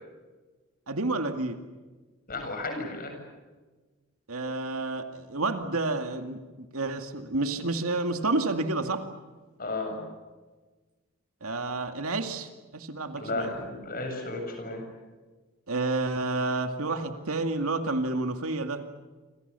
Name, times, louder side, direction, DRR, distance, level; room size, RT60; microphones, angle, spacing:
voice 1, 0.9-1.6 4.3-9.0 11.4-13.5 15.7-18.8, right 2 dB, 75° right, 6 dB, 2.3 m, -30 dB
voice 2, 2.3-3.2 9.6-10.1 13.2-14.8, left 2 dB, 40° left, 4 dB, 7.4 m, -33 dB
29.5 x 26.0 x 7.0 m, 1.3 s
head